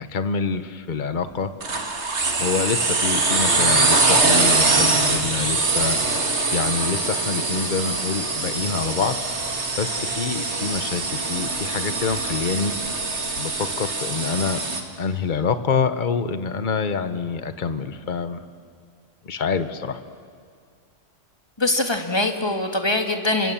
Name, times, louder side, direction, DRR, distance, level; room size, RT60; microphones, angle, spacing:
voice 1, 0.0-1.5 2.3-6.0 6.5-9.2 9.8-12.7 13.4-14.6 15.0-18.4 19.3-20.0, left 5 dB, 45° left, 10 dB, 1.2 m, -26 dB
sound 1, 1.6-14.8, right 3 dB, 65° right, 2.4 m, -23 dB
voice 2, 21.6-23.5, left 2 dB, 20° left, 4 dB, 2.0 m, -23 dB
30.0 x 25.5 x 7.4 m, 2.2 s
omnidirectional pair, 1.2 m